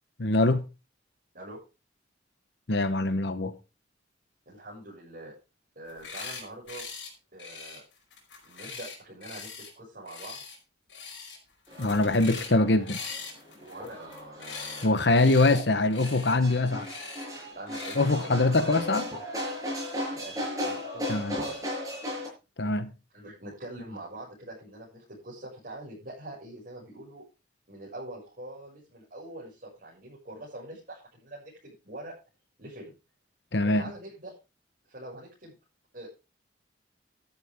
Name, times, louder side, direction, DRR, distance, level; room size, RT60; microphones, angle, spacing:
voice 1, 0.2-0.6 2.7-3.5 11.8-13.0 14.8-16.9 18.0-19.0 21.1-21.4 22.6-22.9 33.5-33.8, left 2 dB, 65° left, 1.0 m, -23 dB
voice 2, 4.4-5.3 5.7-6.8 7.3-7.8 8.4-9.5 9.8-10.4 11.7-12.5 13.6-15.6 17.5-18.7 20.0-22.2 23.1-27.2 27.7-32.1 32.6-32.9 33.6-34.3 34.9-35.5 35.9-36.1, right 1 dB, 50° right, 6.8 m, -44 dB
sound 1, 5.9-6.4 6.7-7.1 7.4-9.7 10.1-10.6 10.9-11.4 11.6-12.6 12.9-14.9 15.1-15.6 15.9-16.3 16.8-17.3 17.7-18.0, left 5 dB, 80° left, 5.3 m, -41 dB
sound 2, 11.7-22.3, left 1 dB, 20° right, 6.7 m, -37 dB
13.0 x 12.0 x 3.6 m
head